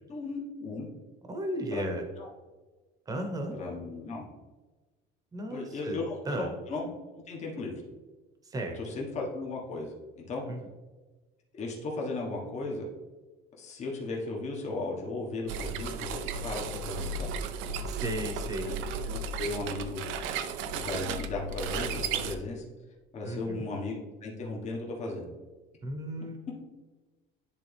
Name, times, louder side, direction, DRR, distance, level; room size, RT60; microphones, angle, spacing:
voice 1, 0.1-0.9 1.7-2.3 3.5-4.3 5.5-6.9 7.1-7.7 8.7-10.4 11.5-12.8 13.6-16.2 16.4-17.3 18.6-18.8 19.0-20.0 20.7-22.6 23.1-25.2, left 3 dB, 35° left, -2 dB, 1.4 m, -36 dB
voice 2, 1.3-2.0 3.1-3.5 5.3-6.0 6.3-6.5 8.5-8.8 10.5-10.6 17.8-18.8 23.2-23.6 25.8-26.4, right 1 dB, 20° right, 3 dB, 1.0 m, -35 dB
sound 1, 15.5-22.4, right 4 dB, 75° right, 0.6 m, -34 dB
10.5 x 3.7 x 3.4 m, 1.2 s
cardioid pair, 150°, 20 cm